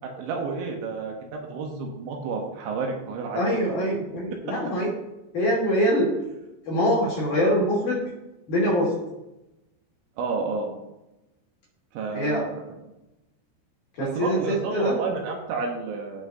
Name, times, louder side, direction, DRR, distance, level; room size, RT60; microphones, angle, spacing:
voice 1, 0.0-3.5 4.4-4.5 10.2-10.7 11.9-12.6 14.0-16.3, right 4 dB, 75° right, 1 dB, 3.2 m, -30 dB
voice 2, 3.3-4.9 5.3-6.1 6.7-8.0 8.5-8.9 12.1-12.5 13.9-14.9, equal, 50° left, -5 dB, 3.0 m, -24 dB
17.0 x 5.8 x 2.8 m, 0.95 s
omnidirectional pair, 5.7 m